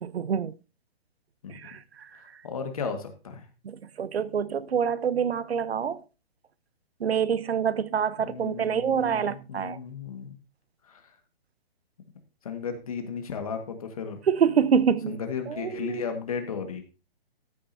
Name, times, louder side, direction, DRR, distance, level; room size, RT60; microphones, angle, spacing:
voice 1, 0.0-0.5 1.5-2.1 3.6-6.0 7.0-9.8 14.3-15.2 15.5-16.0, right 7 dB, 85° right, 0.9 m, -26 dB
voice 2, 2.1-3.4 8.2-10.3 10.9-11.0 12.4-14.2 15.1-16.8, left 6 dB, 35° left, 1.7 m, -35 dB
13.5 x 9.3 x 2.7 m
hypercardioid pair, 180°, 30 cm